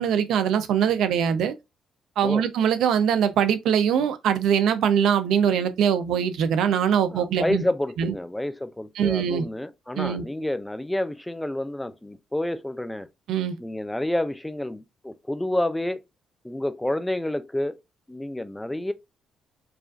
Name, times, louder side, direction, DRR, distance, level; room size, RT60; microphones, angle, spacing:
voice 1, 0.0-1.5 2.2-7.7 8.0-8.1 9.0-9.4 10.0-10.2 13.3-13.6, right 8 dB, 80° right, 0.6 m, -22 dB
voice 2, 7.1-13.1 13.6-16.0 16.4-17.7 18.1-18.9, left 1 dB, 10° left, 0.4 m, -29 dB
4.9 x 2.5 x 2.4 m
cardioid pair, 90°, 0 cm